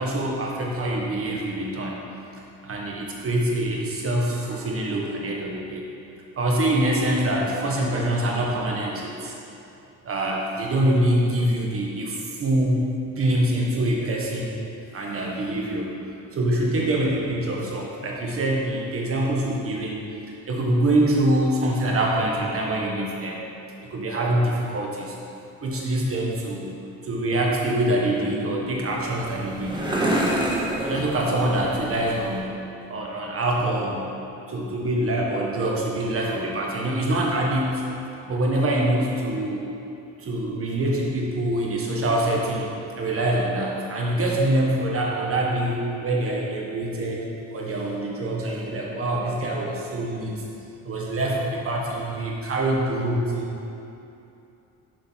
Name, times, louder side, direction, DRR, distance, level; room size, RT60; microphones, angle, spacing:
voice 1, 0.0-2.0 2.6-5.8 6.4-9.3 10.0-14.6 14.9-15.9 16.3-20.0 20.5-23.4 23.9-25.1 25.6-26.7 27.0-29.8 30.8-32.5 32.9-34.1 34.5-37.8 38.3-39.6 40.2-47.3 47.5-50.4 50.8-53.6, right 1 dB, 50° right, -2 dB, 1.5 m, -25 dB
sound 1, 28.8-32.4, right 1 dB, 15° right, 1.5 m, -28 dB
7.6 x 5.5 x 4.6 m, 2.8 s
cardioid pair, 90°, 30 cm